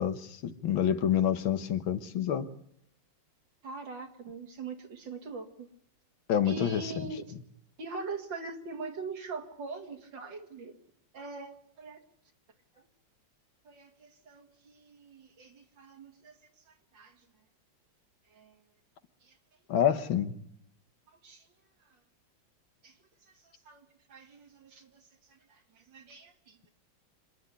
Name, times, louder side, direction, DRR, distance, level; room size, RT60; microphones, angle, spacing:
voice 1, 0.0-2.5 6.3-6.9 19.7-20.4, left 9 dB, 90° left, 10 dB, 2.0 m, -28 dB
voice 2, 3.6-5.7 6.5-7.2 7.8-10.8 11.1-12.0 12.8-12.9 13.6-16.4 16.7-17.2 18.3-18.6 19.2-19.3 21.2-21.5 22.8-22.9 23.4-25.0 25.3-26.6, right 3 dB, 70° right, 3 dB, 2.8 m, -42 dB
26.5 x 10.5 x 9.6 m, 0.76 s
omnidirectional pair, 2.1 m